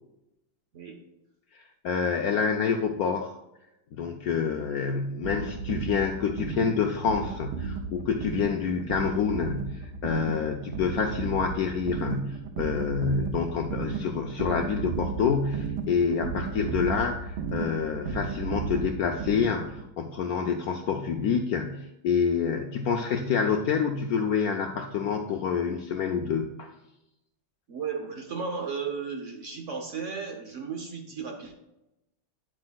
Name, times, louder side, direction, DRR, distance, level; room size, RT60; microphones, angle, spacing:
voice 1, 1.8-3.3 3.9-26.7, left 6 dB, 90° left, 4 dB, 0.8 m, -27 dB
sound 1, 5.2-19.9, right 5 dB, 80° right, 1.4 m, -34 dB
voice 2, 27.7-31.5, right 5 dB, 55° right, 3 dB, 0.8 m, -35 dB
9.7 x 7.6 x 2.3 m, 0.89 s
omnidirectional pair, 2.2 m